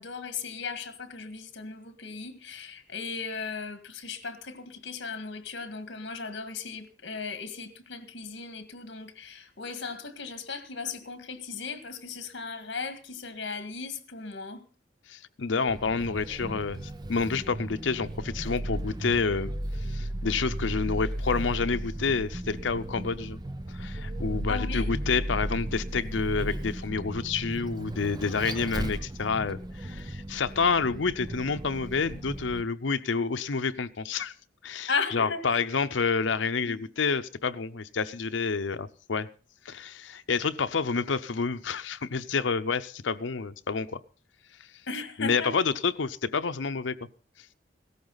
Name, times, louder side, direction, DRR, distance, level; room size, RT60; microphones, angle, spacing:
voice 1, 0.0-14.7 24.5-24.9 34.9-35.6 36.7-36.8 44.9-45.5, left 5 dB, 70° left, 1.8 m, -36 dB
voice 2, 15.1-19.5 19.8-23.4 23.7-34.3 34.6-39.3 39.6-44.0 45.2-47.0, left 5 dB, 85° left, 0.7 m, -29 dB
Vehicle, 15.7-32.6, right 1 dB, 25° right, 0.7 m, -35 dB
16.5 x 14.0 x 4.0 m
head